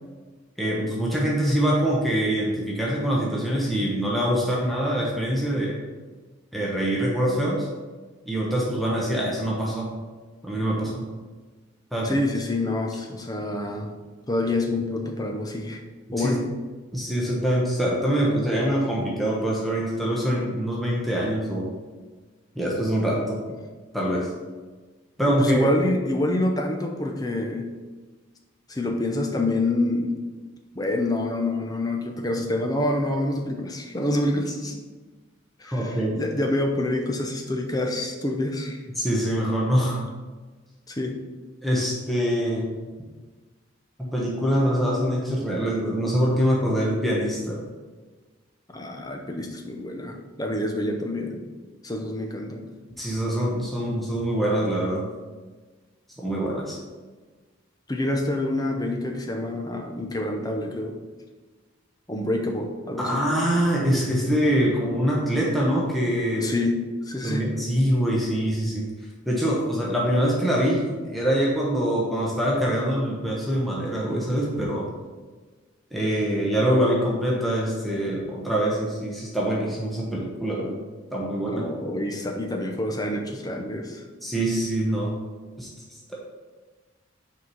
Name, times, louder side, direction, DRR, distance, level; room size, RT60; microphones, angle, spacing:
voice 1, 0.6-5.8 6.5-7.7 8.3-10.0 10.4-11.1 11.9-12.2 16.2-16.4 16.9-21.7 22.5-23.4 23.9-24.3 25.2-25.7 35.6-36.2 38.9-40.0 41.6-42.7 44.0-47.6 53.0-55.1 56.2-56.8 63.0-66.5 67.2-68.9 69.3-74.9 75.9-80.8 81.1-81.6 84.2-85.2 85.6-85.7 86.1-86.2, equal, ahead, -5 dB, 1.1 m, -24 dB
voice 2, 12.0-13.9 14.3-15.8 16.1-16.4 25.4-27.7 28.7-30.1 30.7-34.8 35.6-38.8 40.9-41.2 48.7-51.4 51.8-52.7 57.9-61.0 62.1-63.2 66.4-66.8 67.0-67.4 81.5-84.0, left 1 dB, 20° left, 3 dB, 0.7 m, -27 dB
6.1 x 4.8 x 5.4 m, 1.3 s
head